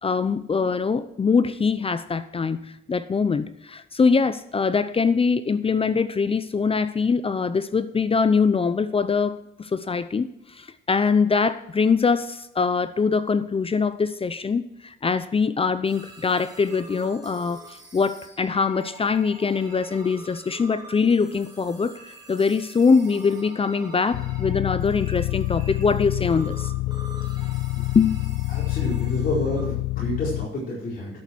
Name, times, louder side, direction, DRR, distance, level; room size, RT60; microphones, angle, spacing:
voice 1, 0.0-26.7 27.9-28.2, left 5 dB, 30° left, 14 dB, 0.6 m, -23 dB
sound 1, 15.8-29.6, right 2 dB, 20° right, 4.5 m, -45 dB
sound 2, 24.1-30.5, left 19 dB, 75° left, 0.4 m, -27 dB
voice 2, 28.5-31.2, left 1 dB, 50° left, -6 dB, 4.7 m, -29 dB
12.5 x 7.1 x 6.2 m, 0.86 s
cardioid pair, 90°, 20 cm